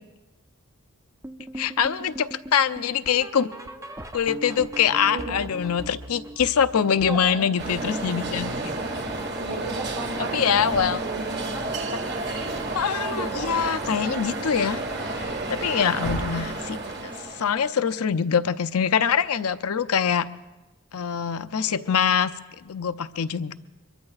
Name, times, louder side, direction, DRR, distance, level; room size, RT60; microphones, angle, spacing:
sound 1, 1.2-10.4 10.6-11.0 11.3-11.4 11.9-12.0 12.5-12.6, right 1 dB, 15° right, 0.5 m, -41 dB
voice 1, 1.6-3.5 4.1-9.0 10.2-11.0 12.7-14.8 15.5-20.3 20.9-23.5, left 7 dB, 80° left, 13 dB, 0.5 m, -24 dB
voice 2, 5.1-5.5 7.0-7.5 9.4-11.5, right 2 dB, 80° right, 0 dB, 2.6 m, -34 dB
sound 2, 7.6-17.6, right 2 dB, 45° right, 1.7 m, -31 dB
24.5 x 22.0 x 2.4 m, 1.1 s
head